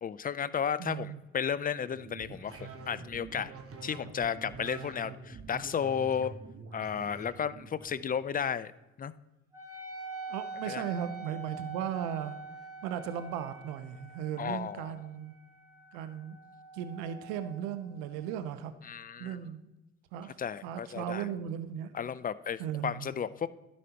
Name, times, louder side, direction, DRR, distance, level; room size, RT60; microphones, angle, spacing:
voice 1, 0.0-3.5 3.8-6.3 6.7-8.7 9.0-9.1 10.7-10.8 14.4-14.9 18.8-19.4 20.4-21.3 21.9-23.5, left 7 dB, 25° left, 16 dB, 0.5 m, -33 dB
voice 2, 0.8-1.2 10.3-12.4 12.8-15.3 15.9-16.4 16.7-18.7 19.2-19.7 20.1-20.4 20.6-21.9 22.6-23.1, right 9 dB, 80° right, 11 dB, 0.6 m, -37 dB
sound 1, 1.8-8.1, right 4 dB, 45° right, 1.2 m, -46 dB
Wind instrument woodwind instrument, 9.5-18.5, right 3 dB, 10° right, 2.5 m, -45 dB
12.5 x 5.3 x 2.9 m, 1.1 s
hypercardioid pair, 50°, 33 cm